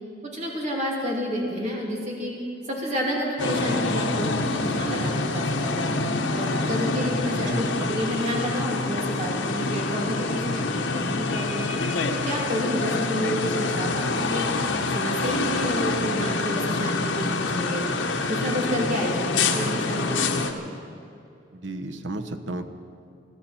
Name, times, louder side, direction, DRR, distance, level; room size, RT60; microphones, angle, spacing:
voice 1, 0.2-2.3 2.7-5.9 6.3-11.7 12.1-14.4 14.9-17.8 18.3-20.3, equal, 40° right, -3 dB, 2.8 m, -29 dB
sound 1, 3.4-20.5, left 3 dB, 85° left, 1.1 m, -26 dB
voice 2, 7.3-7.9 21.5-22.7, right 1 dB, 80° right, 8 dB, 1.0 m, -33 dB
21.5 x 14.0 x 4.4 m, 2.5 s
head